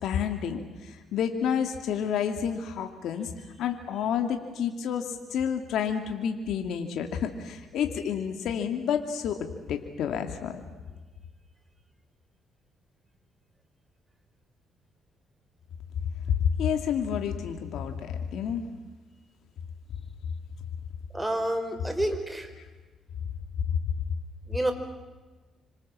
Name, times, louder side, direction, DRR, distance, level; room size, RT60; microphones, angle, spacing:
voice 1, 0.0-3.3 3.6-10.6 16.4-18.6, left 8 dB, 80° left, 5 dB, 2.4 m, -29 dB
voice 2, 21.1-22.5 24.5-24.7, right 1 dB, 10° right, 8 dB, 4.5 m, -29 dB
27.0 x 25.5 x 7.5 m, 1.3 s
cardioid pair, 90°, 0 cm